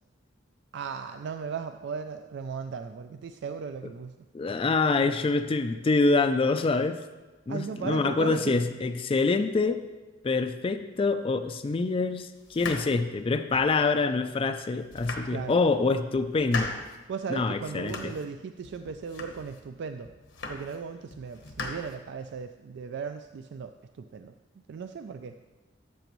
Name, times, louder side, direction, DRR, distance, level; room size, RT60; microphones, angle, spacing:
voice 1, 0.7-4.1 7.5-8.5 15.3-15.6 17.1-20.1 20.5-24.3 24.7-25.4, right 5 dB, 65° right, 8 dB, 0.3 m, -37 dB
voice 2, 4.3-7.0 7.5-9.8 10.2-16.8 17.3-18.1, left 3 dB, 30° left, 9 dB, 0.3 m, -26 dB
sound 1, 12.5-13.8 14.3-14.4 14.8-15.8 16.1-17.0 17.4-18.3 18.6-19.7 20.0-20.8 21.1-22.4, left 3 dB, 70° left, 1.1 m, -39 dB
13.0 x 6.9 x 3.0 m, 1.2 s
head